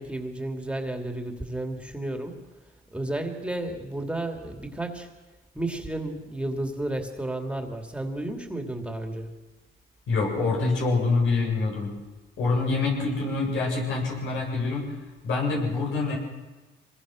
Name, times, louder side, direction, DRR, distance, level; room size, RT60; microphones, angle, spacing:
voice 1, 0.0-2.4 2.9-5.1 5.5-9.3, right 1 dB, 5° right, 4 dB, 2.6 m, -32 dB
voice 2, 10.1-11.9 12.4-15.0 15.2-16.2, left 3 dB, 75° left, -1 dB, 8.0 m, -25 dB
25.0 x 21.0 x 6.4 m, 1.2 s
cardioid pair, 90°, 20 cm